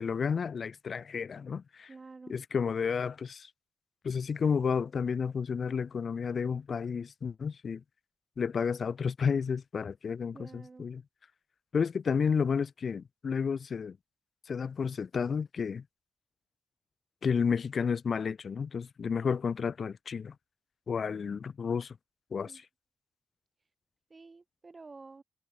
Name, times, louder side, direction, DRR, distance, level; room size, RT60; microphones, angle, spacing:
voice 1, 0.0-1.9 2.3-3.5 4.0-7.8 8.4-11.0 11.7-14.0 14.5-15.8 17.2-20.3 20.9-22.0 22.3-22.6, left 6 dB, 50° left, 0.3 m, -31 dB
voice 2, 1.9-2.3 10.3-10.9 22.4-22.6 24.1-25.2, right 3 dB, 30° right, 1.0 m, -50 dB
cardioid pair, 115°, 0 cm